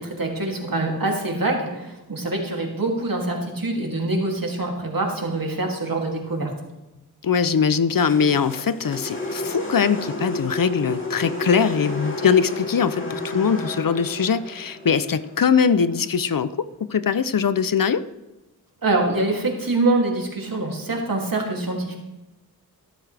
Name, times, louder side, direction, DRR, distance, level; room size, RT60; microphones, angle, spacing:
voice 1, 0.0-6.5 18.8-21.9, right 2 dB, 60° right, 0 dB, 2.7 m, -25 dB
voice 2, 7.2-18.0, left 6 dB, 60° left, 14 dB, 0.6 m, -21 dB
sound 1, 8.0-16.2, left 1 dB, 30° left, 2.7 m, -32 dB
14.5 x 12.5 x 3.4 m, 1.0 s
wide cardioid pair, 80°, 38 cm